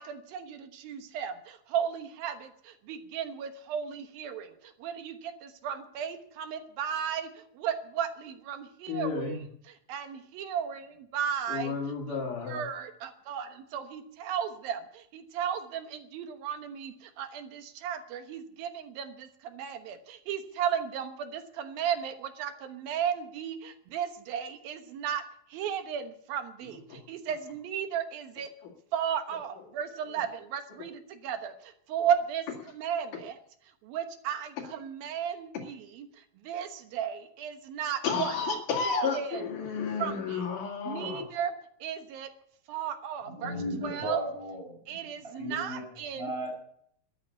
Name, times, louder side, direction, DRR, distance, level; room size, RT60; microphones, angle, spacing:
voice 1, 0.0-9.4 9.9-11.7 12.1-25.2 25.5-28.5 28.9-32.4 32.7-33.4 33.8-38.4 38.9-39.4 40.0-40.4 40.9-41.5 41.8-42.3 42.7-43.5 43.8-44.2 44.9-46.3, right 8 dB, 85° right, 8 dB, 3.0 m, -35 dB
voice 2, 8.9-9.4 11.5-12.6 26.7-27.0 28.6-28.7 38.0-41.3, left 5 dB, 65° left, 2 dB, 3.6 m, -32 dB
voice 3, 43.3-46.5, equal, 15° right, 0 dB, 6.2 m, -36 dB
13.0 x 10.5 x 8.2 m, 0.64 s
omnidirectional pair, 4.1 m